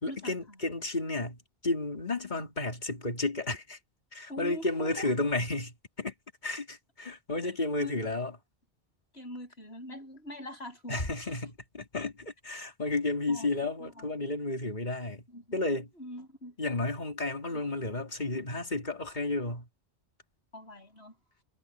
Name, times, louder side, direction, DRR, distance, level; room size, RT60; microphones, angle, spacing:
voice 1, 0.0-3.8 4.1-6.1 6.4-8.4 10.9-15.2 15.5-15.9 16.6-19.7, left 2 dB, 40° left, 2.9 m, -32 dB
voice 2, 4.3-5.1 7.4-7.5 7.8-8.0 9.1-11.0 13.3-13.5 13.8-14.1 15.3-15.6 16.0-16.6 20.5-21.1, equal, 65° left, 8.4 m, -43 dB
omnidirectional pair, 1.1 m